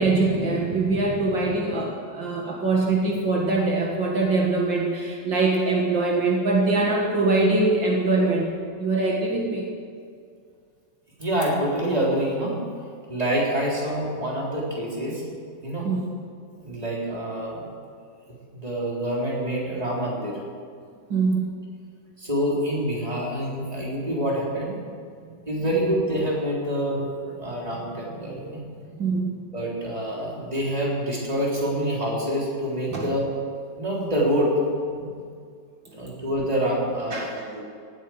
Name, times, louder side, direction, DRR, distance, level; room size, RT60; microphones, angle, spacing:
voice 1, 0.0-8.5 8.8-9.7 15.8-16.1 21.1-21.5 25.2-25.3 28.2-28.3 29.0-29.3 32.9-33.1 37.1-37.3, right 3 dB, 70° right, -2 dB, 2.5 m, -23 dB
voice 2, 11.2-12.6 13.1-15.2 15.6-15.9 16.6-17.6 18.6-20.4 22.2-24.8 25.5-28.6 29.5-33.3 33.8-34.5 34.9-35.3 35.9-37.6, equal, 20° right, -4 dB, 3.9 m, -26 dB
18.0 x 9.3 x 7.9 m, 2.2 s
omnidirectional pair, 2.1 m